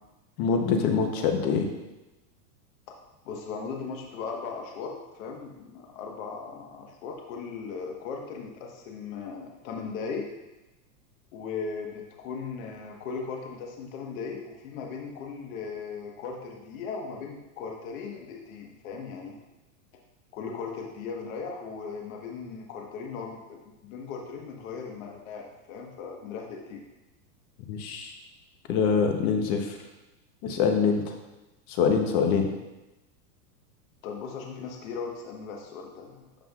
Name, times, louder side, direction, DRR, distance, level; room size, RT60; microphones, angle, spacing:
voice 1, 0.4-1.7 27.7-28.1 28.7-29.8 30.4-31.1 31.7-32.5, left 5 dB, 35° left, 4 dB, 0.8 m, -24 dB
voice 2, 3.2-10.3 11.3-19.4 20.3-26.8 34.0-36.3, left 5 dB, 55° left, 1 dB, 1.3 m, -38 dB
12.5 x 5.6 x 2.4 m, 1.0 s
supercardioid pair, 150°, 49 cm